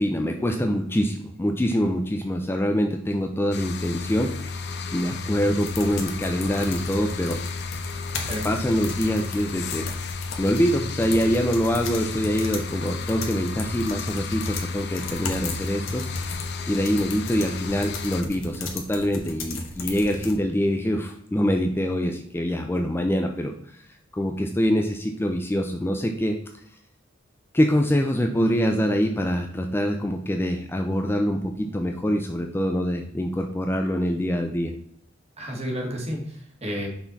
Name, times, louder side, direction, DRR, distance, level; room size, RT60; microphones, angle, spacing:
voice 1, 0.0-7.4 8.4-9.9 10.4-23.8 24.1-26.4 27.5-34.7, equal, 10° left, 3 dB, 0.4 m, -25 dB
sound 1, 3.5-18.2, left 4 dB, 60° left, 0.6 m, -33 dB
sound 2, 5.6-20.4, left 3 dB, 85° left, 1.2 m, -36 dB
voice 2, 35.4-36.9, equal, 35° right, 0 dB, 1.7 m, -31 dB
5.7 x 4.3 x 4.0 m, 0.66 s
head